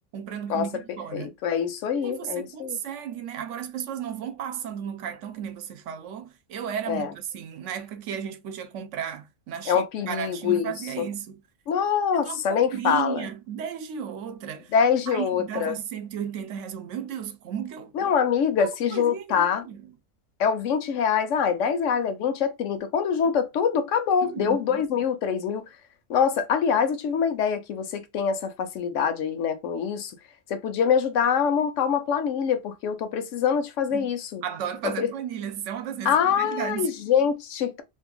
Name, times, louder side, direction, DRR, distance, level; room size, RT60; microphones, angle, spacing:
voice 1, 0.1-1.3 1.9-11.4 12.1-14.7 15.1-17.9 18.6-19.8 23.2-23.3 24.2-24.8 33.9-34.1 34.4-36.9, right 8 dB, 70° right, 0.9 m, -34 dB
voice 2, 1.1-2.8 6.9-7.1 9.7-11.1 11.7-13.3 14.7-15.8 17.9-19.6 20.4-25.6 26.1-30.1 30.5-34.4 34.8-35.1 36.0-37.8, left 7 dB, 75° left, 0.9 m, -24 dB
2.7 x 2.5 x 3.7 m
omnidirectional pair, 1.3 m